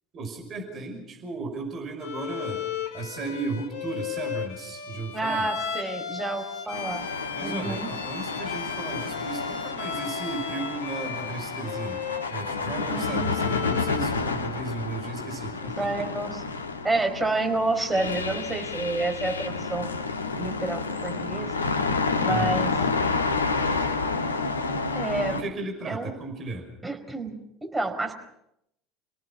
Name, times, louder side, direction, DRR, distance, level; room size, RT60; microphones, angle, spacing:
voice 1, 0.1-2.6 2.9-5.5 7.3-12.0 12.3-16.1 22.2-22.6 25.3-26.7, right 3 dB, 40° right, 3 dB, 5.5 m, -35 dB
Bowed string instrument, 2.0-14.1, left 8 dB, 60° left, 2.5 m, -36 dB
voice 2, 5.1-7.0 7.4-7.9 12.9-13.3 15.8-16.4 16.8-19.9 20.4-21.5 22.2-22.7 24.9-25.4 25.9-26.1 26.8-28.1, right 2 dB, 15° right, 4 dB, 4.7 m, -29 dB
sound 1, 6.7-25.4, left 4 dB, 80° left, 1.4 m, -30 dB
29.5 x 19.0 x 5.9 m, 0.78 s
figure-of-eight pair, 65°, 0 cm